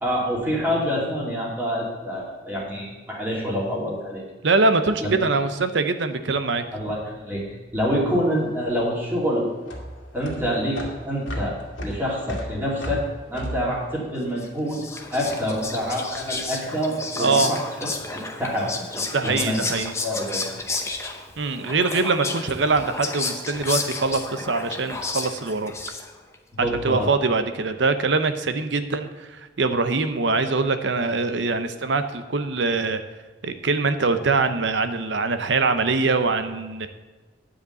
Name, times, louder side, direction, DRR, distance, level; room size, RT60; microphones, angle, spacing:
voice 1, 0.0-4.2 5.0-5.2 6.7-7.4 7.7-9.5 10.1-14.8 15.1-17.6 18.1-20.4 26.5-27.1, equal, 10° right, -5 dB, 2.5 m, -27 dB
voice 2, 4.4-6.6 17.2-17.5 19.1-19.9 21.4-25.7 26.6-33.0 33.4-36.9, right 3 dB, 70° right, 9 dB, 0.7 m, -23 dB
sound 1, 8.3-14.9, equal, 85° left, 2.0 m, -35 dB
Whispering, 14.4-26.3, left 3 dB, 15° left, 0.7 m, -32 dB
9.7 x 5.1 x 7.8 m, 1.3 s
head